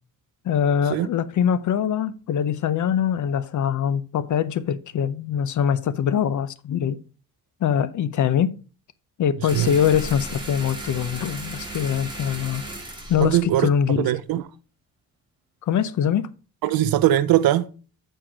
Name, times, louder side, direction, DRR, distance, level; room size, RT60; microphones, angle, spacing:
voice 1, 0.4-7.0 7.6-8.5 9.2-12.6 13.1-14.1 15.6-16.3, left 8 dB, 55° left, 0.7 m, -23 dB
sound 1, 9.5-14.4, right 2 dB, 15° right, 2.5 m, -36 dB
voice 2, 13.2-14.4 16.6-17.7, right 13 dB, 85° right, 0.6 m, -21 dB
7.7 x 4.5 x 4.9 m
cardioid pair, 105°, 35 cm